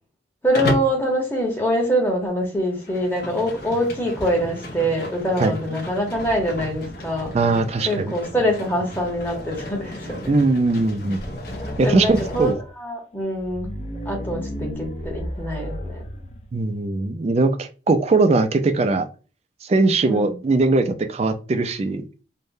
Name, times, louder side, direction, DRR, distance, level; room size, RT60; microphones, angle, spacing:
voice 1, 0.4-7.4 7.9-10.2 11.8-13.7 14.0-16.0 20.0-20.3, equal, 10° left, -1 dB, 0.9 m, -24 dB
Livestock farm animals working animals, 0.5-1.0 2.7-12.5, equal, 60° left, 0.8 m, -33 dB
voice 2, 7.3-8.0 10.3-11.2 11.8-12.6 16.5-19.1 19.6-22.0, right 3 dB, 35° right, 8 dB, 0.3 m, -20 dB
sound 1, 9.0-10.5 10.8-10.9 11.1-12.7 13.3-16.5, equal, 35° left, 0.5 m, -34 dB
3.5 x 2.1 x 2.6 m, 0.34 s
head